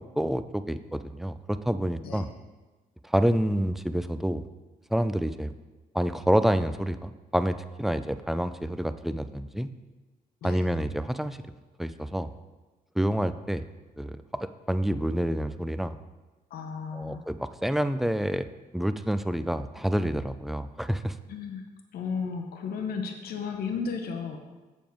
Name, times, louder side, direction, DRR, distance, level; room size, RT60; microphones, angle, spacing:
voice 1, 0.2-2.3 3.0-4.4 4.9-5.5 5.9-9.7 10.4-11.4 11.8-12.3 13.0-13.6 14.0-16.0 16.9-18.5 18.7-21.1, equal, ahead, 11 dB, 0.4 m, -28 dB
voice 2, 16.5-17.3 21.3-21.6 21.9-24.4, left 5 dB, 75° left, 3 dB, 0.9 m, -34 dB
7.2 x 7.0 x 4.6 m, 1.2 s
cardioid pair, 80°, 16 cm